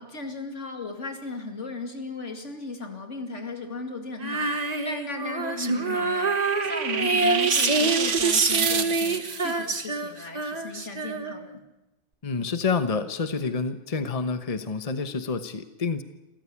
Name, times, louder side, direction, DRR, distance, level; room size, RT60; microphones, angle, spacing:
voice 1, 0.0-6.3 6.6-11.6, left 3 dB, 80° left, 5 dB, 2.8 m, -36 dB
Female singing, 4.2-11.6, right 3 dB, 35° right, 1.5 m, -26 dB
sound 1, 5.4-9.5, right 7 dB, 90° right, 1.5 m, -28 dB
voice 2, 12.2-16.0, left 4 dB, 30° left, 10 dB, 1.2 m, -28 dB
27.5 x 14.5 x 8.5 m, 0.99 s
omnidirectional pair, 1.2 m